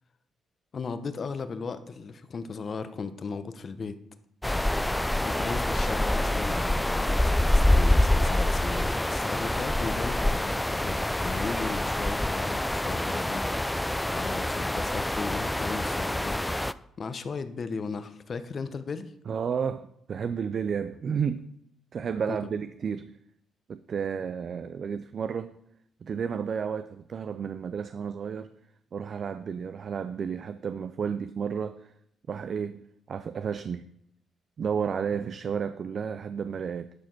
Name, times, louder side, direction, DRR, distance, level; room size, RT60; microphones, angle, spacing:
voice 1, 0.7-4.0 5.2-13.4 14.1-16.4 17.0-19.1 22.3-22.4, left 5 dB, 45° left, 0.9 m, -36 dB
sound 1, 4.4-16.7, left 1 dB, 5° left, 0.4 m, -26 dB
voice 2, 19.3-21.4 21.9-23.1 23.7-25.5 26.0-28.5 28.9-31.9 32.3-32.8 33.1-33.8 34.6-36.9, right 7 dB, 50° right, 0.4 m, -32 dB
11.5 x 5.1 x 6.1 m
cardioid pair, 90°, 0 cm